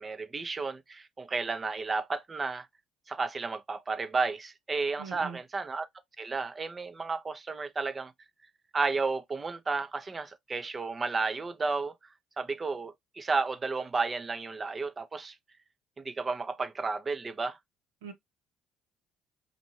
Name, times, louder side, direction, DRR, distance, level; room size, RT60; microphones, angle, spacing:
voice 1, 0.0-2.7 3.1-5.9 6.2-8.1 8.7-12.0 12.4-15.4 16.0-17.6, right 4 dB, 30° right, 0.7 m, -32 dB
voice 2, 5.0-5.4 18.0-18.1, right 7 dB, 85° right, 0.9 m, -41 dB
4.2 x 2.5 x 2.9 m
hypercardioid pair, 60°, 0 cm